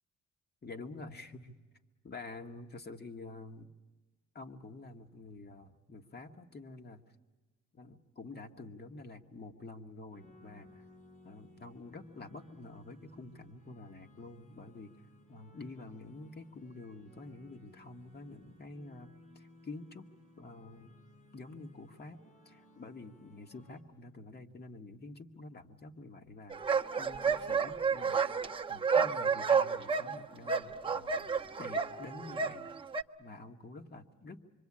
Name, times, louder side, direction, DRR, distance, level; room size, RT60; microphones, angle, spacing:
voice 1, 0.6-1.6 2.0-3.7 4.4-7.0 7.7-10.8 11.2-14.9 15.3-20.1 20.4-21.0 21.3-26.5 27.0-28.3 28.7-31.3 31.6-32.7 33.2-34.4, left 2 dB, 30° left, 5 dB, 1.9 m, -48 dB
sound 1, 10.1-23.8, left 2 dB, 80° left, 7.6 m, -59 dB
sound 2, 26.5-33.0, right 5 dB, 15° right, 1.0 m, -31 dB
26.5 x 25.0 x 8.8 m, 1.2 s
cardioid pair, 110°, 31 cm